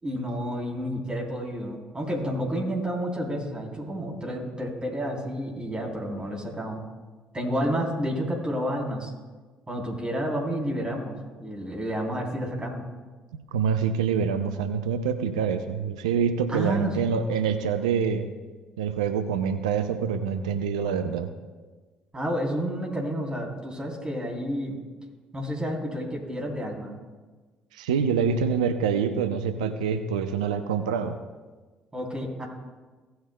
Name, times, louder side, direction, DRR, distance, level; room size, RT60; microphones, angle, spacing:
voice 1, 0.0-6.8 7.3-9.1 9.7-12.8 16.5-16.9 22.1-24.8 25.3-26.9 31.9-32.5, equal, 25° right, -2 dB, 3.4 m, -30 dB
voice 2, 13.5-18.3 18.8-21.3 27.7-31.2, right 6 dB, 75° right, 9 dB, 0.5 m, -26 dB
17.0 x 9.4 x 2.2 m, 1.3 s
figure-of-eight pair, 50°, 4 cm